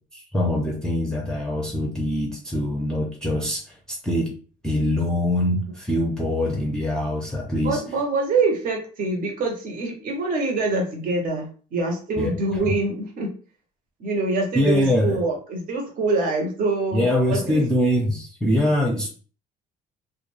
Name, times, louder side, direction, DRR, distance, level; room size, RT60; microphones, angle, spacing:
voice 1, 0.1-4.3 4.6-7.8 12.2-12.4 14.5-15.2 16.9-19.1, left 1 dB, 5° left, -2 dB, 0.6 m, -23 dB
voice 2, 7.6-13.3 14.0-17.6, right 3 dB, 55° right, 1 dB, 0.8 m, -25 dB
2.2 x 2.2 x 3.1 m, 0.39 s
cardioid pair, 110°, 17 cm